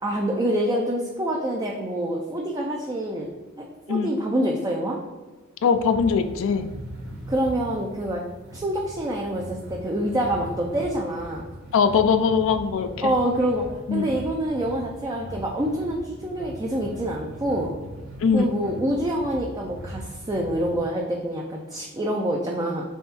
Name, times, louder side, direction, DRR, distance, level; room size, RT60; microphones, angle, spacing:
voice 1, 0.0-3.3 3.6-5.0 7.3-8.2 8.5-11.5 13.0-17.7 18.3-22.8, right 1 dB, 20° right, -1 dB, 0.4 m, -26 dB
voice 2, 5.6-6.7 11.7-13.1 13.9-14.1 18.2-18.5, left 6 dB, 65° left, 8 dB, 0.3 m, -21 dB
sound 1, 5.7-20.7, equal, 80° right, 1.3 m, -40 dB
3.6 x 3.3 x 4.2 m, 1.2 s
head